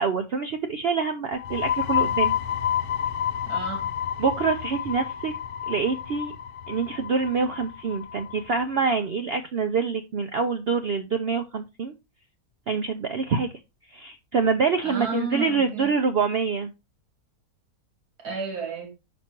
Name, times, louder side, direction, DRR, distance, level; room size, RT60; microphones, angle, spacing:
voice 1, 0.0-2.3 4.2-5.3 5.7-6.3 6.7-11.9 12.7-13.5 13.9-16.7, right 5 dB, 55° right, 0.7 m, -26 dB
sound 1, 1.3-8.8, left 9 dB, 80° left, 1.1 m, -29 dB
voice 2, 3.5-3.9 14.8-15.9 18.2-18.9, right 4 dB, 85° right, 2.7 m, -32 dB
5.7 x 5.2 x 4.5 m
omnidirectional pair, 1.6 m